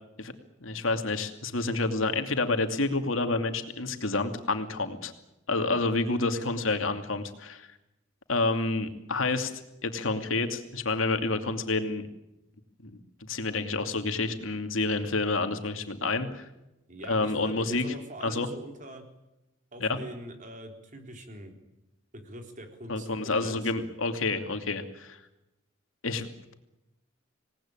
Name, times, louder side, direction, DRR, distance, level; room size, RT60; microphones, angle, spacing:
voice 1, 0.6-5.1 5.5-7.7 8.3-9.5 9.8-12.1 12.8-13.0 13.3-16.5 17.1-17.8 18.2-18.5 19.8-20.0 22.9-25.2 26.0-26.5, left 3 dB, 80° left, 6 dB, 2.7 m, -29 dB
voice 2, 16.9-19.1 19.7-21.5 22.1-23.1 23.4-23.9, right 1 dB, 40° right, 4 dB, 3.8 m, -43 dB
26.5 x 19.0 x 9.0 m, 0.92 s
head